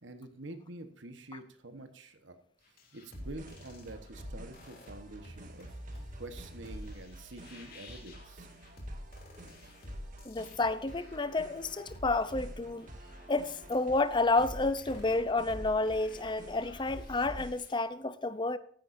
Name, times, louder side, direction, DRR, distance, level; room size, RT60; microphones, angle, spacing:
voice 1, 0.0-2.4 2.7-8.5, right 2 dB, 65° right, 1.3 m, -47 dB
sound 1, 2.6-17.8, equal, 50° left, 2.9 m, -48 dB
sound 2, 3.2-17.5, right 1 dB, 40° right, 2.0 m, -51 dB
voice 2, 10.2-12.9 13.3-18.6, left 2 dB, 25° left, 0.6 m, -30 dB
14.5 x 10.5 x 2.7 m
head